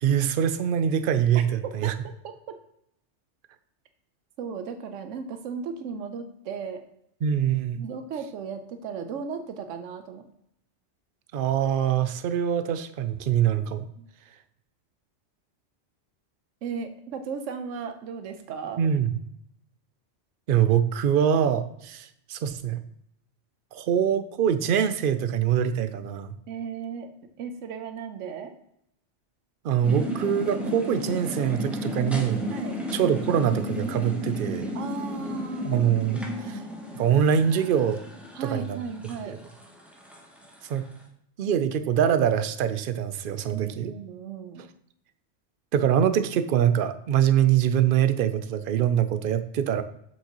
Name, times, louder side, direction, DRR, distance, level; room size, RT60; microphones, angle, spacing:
voice 1, 0.0-1.9 7.2-7.8 11.3-13.9 18.8-19.1 20.5-22.8 23.7-26.3 29.6-32.4 32.9-34.7 35.6-36.2 36.5-36.6 36.9-38.0 38.4-38.8 39.3-39.4 40.7-40.8 41.4-43.9 45.7-49.8, right 9 dB, 60° right, 11 dB, 0.6 m, -24 dB
voice 2, 1.3-2.0 2.2-2.6 4.4-6.8 7.7-10.2 14.0-14.1 16.6-18.8 26.5-27.1 27.4-28.5 32.5-32.8 34.7-35.9 38.3-39.4 43.5-44.7, right 5 dB, 85° right, 8 dB, 1.0 m, -35 dB
sound 1, 29.8-40.9, equal, ahead, 0.9 m, -34 dB
7.2 x 5.9 x 2.9 m, 0.73 s
omnidirectional pair, 1.2 m